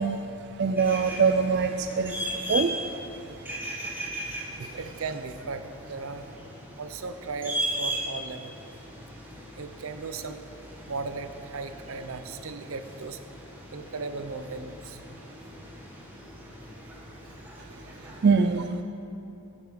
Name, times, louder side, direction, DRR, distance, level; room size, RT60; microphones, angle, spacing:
voice 1, 0.0-2.7 4.6-4.8 18.2-18.8, right 5 dB, 50° right, 7 dB, 0.4 m, -24 dB
sound 1, 0.8-18.2, equal, 10° right, 1.7 m, -38 dB
voice 2, 4.6-6.2 6.8-8.6 9.6-10.4 10.9-13.2 13.7-15.3 18.6-18.7, right 4 dB, 75° right, 9 dB, 0.7 m, -37 dB
12.5 x 8.3 x 6.9 m, 2.8 s
head